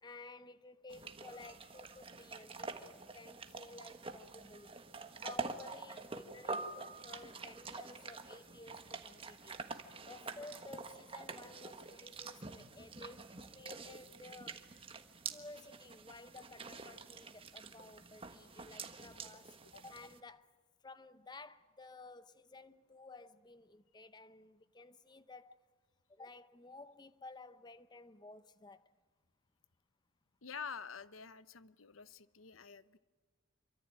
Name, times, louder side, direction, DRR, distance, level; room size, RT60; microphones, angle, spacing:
voice 1, 0.0-4.7 5.2-9.6 10.1-13.3 13.5-14.6 15.3-19.6 19.8-20.5 20.8-25.6 26.1-28.9, left 3 dB, 20° left, 0.8 m, -54 dB
sound 1, 0.9-20.2, right 4 dB, 25° right, 1.5 m, -47 dB
voice 2, 30.4-33.0, left 6 dB, 85° left, 0.9 m, -48 dB
27.0 x 24.5 x 8.9 m
head